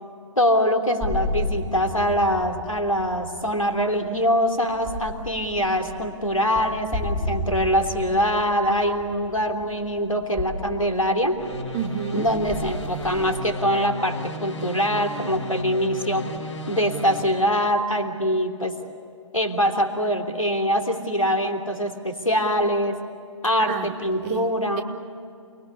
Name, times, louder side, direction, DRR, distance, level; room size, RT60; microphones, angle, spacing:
voice 1, 0.4-11.4 12.1-16.3 16.7-18.7 19.3-23.0 23.4-24.8, equal, 90° left, 3.3 m, -23 dB
Ruler Boing, 1.0-13.3, left 2 dB, 10° right, 5.6 m, -33 dB
sound 1, 11.4-17.2, equal, 60° left, 6.5 m, -34 dB
voice 2, 11.7-12.3 23.7-24.0 24.2-24.5 24.8-24.9, right 9 dB, 25° right, 1.6 m, -30 dB
29.0 x 21.0 x 8.5 m
figure-of-eight pair, 130°, 17 cm